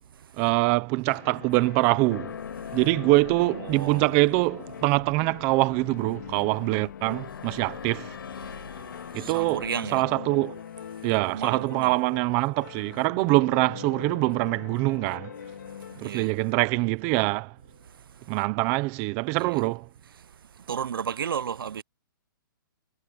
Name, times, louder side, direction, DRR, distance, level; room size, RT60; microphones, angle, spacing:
voice 1, 0.4-2.4 2.7-8.1 9.1-10.6 11.0-15.3 16.0-17.5 18.3-19.9, right 23 dB, 15° right, 0.6 m, -24 dB
sound 1, 1.1-17.8, left 9 dB, 50° left, 2.2 m, -43 dB
sound 2, 2.1-9.8, left 7 dB, 75° left, 7.8 m, -43 dB
voice 2, 3.5-4.1 9.1-10.0 11.2-11.9 15.9-16.3 19.4-19.6 20.7-21.8, right 8 dB, 75° right, 0.6 m, -33 dB
hypercardioid pair, 170°, 12 cm